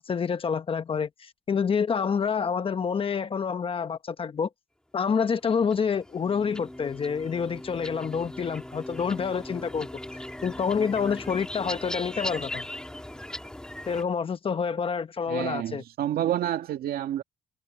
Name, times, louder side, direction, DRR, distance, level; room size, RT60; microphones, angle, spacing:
voice 1, 0.0-4.5 4.9-9.9 10.4-12.7 13.9-15.8, left 6 dB, 35° left, 1.1 m, -28 dB
sound 1, 5.4-14.0, left 1 dB, 5° left, 2.0 m, -39 dB
voice 2, 15.3-17.2, right 11 dB, 65° right, 2.0 m, -29 dB
cardioid pair, 110°, 17 cm